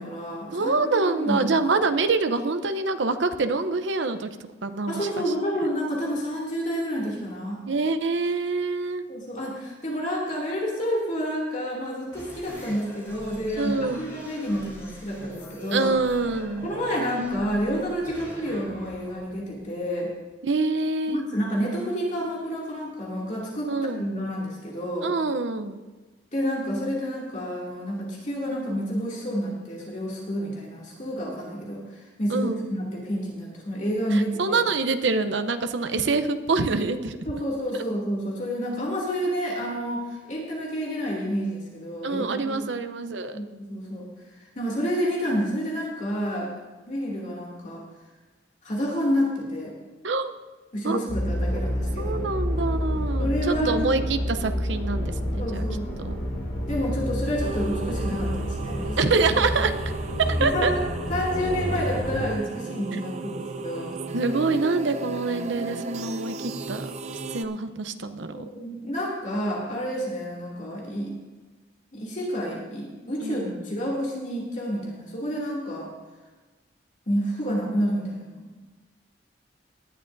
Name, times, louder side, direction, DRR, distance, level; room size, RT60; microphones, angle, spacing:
voice 1, 0.0-1.6 4.9-7.6 9.1-15.9 16.6-20.1 21.1-25.1 26.3-34.6 37.3-42.7 43.3-44.1 44.6-46.5 46.9-47.8 48.6-49.7 50.7-52.3 53.2-54.0 55.4-55.9 56.7-59.2 60.4-60.8 61.1-64.0 68.3-71.2 71.9-75.9 77.1-78.5, equal, 40° left, -4 dB, 2.6 m, -29 dB
voice 2, 0.5-4.3 4.6-5.2 7.7-9.0 13.6-14.1 15.7-16.7 20.4-21.2 23.7-24.1 25.0-25.8 32.3-32.6 34.1-37.2 42.0-43.4 50.0-50.3 50.8-51.0 51.6-51.7 52.0-55.7 56.0-56.2 59.0-59.7 60.2-60.7 64.1-66.9 67.3-68.5 73.2-73.6, right 3 dB, 75° right, 9 dB, 0.8 m, -26 dB
sound 1, 12.1-20.3, right 1 dB, 15° left, 4.2 m, -43 dB
sound 2, 51.1-62.3, equal, 80° left, 2.4 m, -29 dB
sound 3, 57.4-67.4, right 3 dB, 35° right, 0.5 m, -35 dB
18.5 x 11.5 x 2.7 m, 1.3 s
head